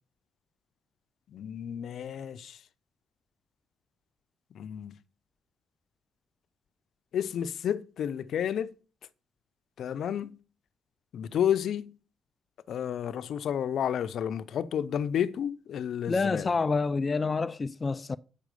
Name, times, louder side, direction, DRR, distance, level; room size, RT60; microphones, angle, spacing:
voice 1, 1.3-2.6 4.5-5.0 7.1-8.7 9.8-10.4 11.1-11.9 12.7-16.6, left 9 dB, 65° left, 0.7 m, -31 dB
voice 2, 16.1-18.2, left 4 dB, 30° left, 0.5 m, -28 dB
8.3 x 6.2 x 6.8 m
cardioid pair, 90°, 0 cm